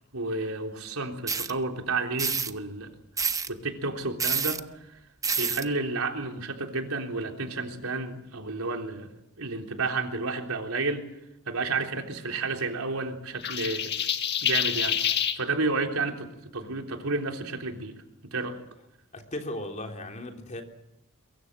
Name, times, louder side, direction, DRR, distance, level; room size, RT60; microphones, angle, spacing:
voice 1, 0.1-2.9 3.5-5.0 5.4-9.1 9.4-11.1 11.5-13.9 14.4-16.3 16.5-17.9 18.3-18.6, right 3 dB, 85° right, 3 dB, 3.6 m, -31 dB
sound 1, 1.3-1.5 2.2-2.5 3.2-3.5 4.2-4.6 5.2-5.6, right 5 dB, 15° right, 0.9 m, -27 dB
sound 2, 13.4-15.4, left 8 dB, 50° left, 1.7 m, -27 dB
voice 2, 19.1-20.6, left 1 dB, 35° left, 3 dB, 3.6 m, -36 dB
23.0 x 23.0 x 7.6 m, 0.83 s
head